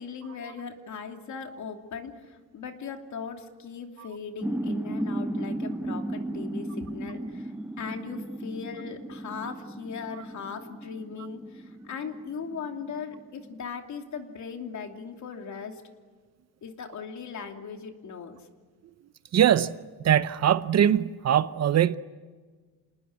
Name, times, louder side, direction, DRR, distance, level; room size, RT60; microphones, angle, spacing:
voice 1, 0.0-15.8 16.6-18.4, left 6 dB, 50° left, 2.9 m, -39 dB
sound 1, 4.4-13.6, right 1 dB, 5° right, 0.9 m, -35 dB
voice 2, 19.3-19.8 20.0-22.0, right 10 dB, 45° right, 0.7 m, -22 dB
28.0 x 19.5 x 9.9 m
cardioid pair, 125°, 37 cm